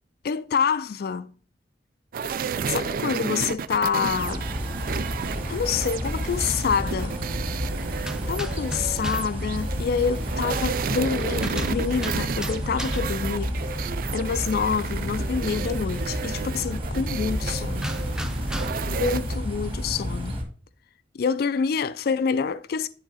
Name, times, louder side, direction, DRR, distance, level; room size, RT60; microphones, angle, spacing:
voice 1, 0.2-1.3 2.7-4.5 5.5-7.2 8.3-13.5 13.8-17.8 18.9-20.4 21.1-22.9, left 6 dB, 55° left, 0.4 m, -27 dB
sound 1, 2.1-19.4, right 6 dB, 50° right, 0.3 m, -32 dB
sound 2, 4.2-20.4, equal, 30° right, 1.8 m, -30 dB
sound 3, 8.0-9.4 11.2-13.3 17.8-19.0, equal, 5° right, 0.5 m, -36 dB
10.5 x 3.9 x 4.0 m
head